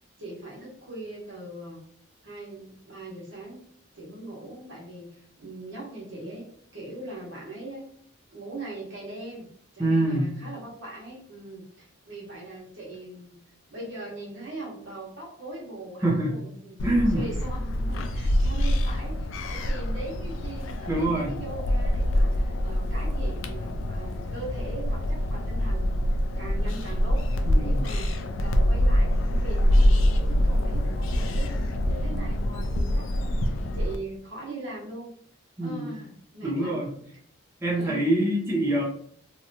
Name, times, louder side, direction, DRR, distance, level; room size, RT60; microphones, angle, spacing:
voice 1, 0.2-1.8 2.2-3.6 3.9-7.8 8.3-9.5 9.7-13.4 13.7-16.8 17.1-26.1 26.4-35.1 35.6-36.9 37.7-38.3, right 2 dB, 70° right, -4 dB, 1.0 m, -40 dB
voice 2, 9.8-10.4 16.0-16.3 16.8-17.3 20.9-21.4 27.5-27.9 35.6-35.9 36.4-36.9 37.6-38.8, right 1 dB, 15° right, -5 dB, 0.5 m, -25 dB
sound 1, 16.8-34.0, equal, 75° left, 0.3 m, -25 dB
2.8 x 2.2 x 2.6 m, 0.64 s
head